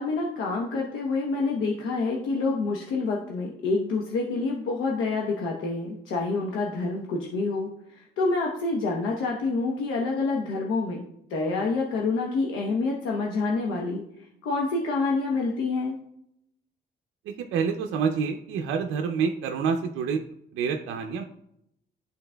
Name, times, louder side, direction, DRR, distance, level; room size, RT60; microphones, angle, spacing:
voice 1, 0.0-11.0 11.3-14.0 14.4-16.0, left 3 dB, 85° left, -1 dB, 0.9 m, -27 dB
voice 2, 17.3-20.2 20.5-21.2, right 6 dB, 90° right, 3 dB, 0.5 m, -27 dB
11.0 x 4.0 x 2.2 m, 0.75 s
cardioid pair, 90°, 20 cm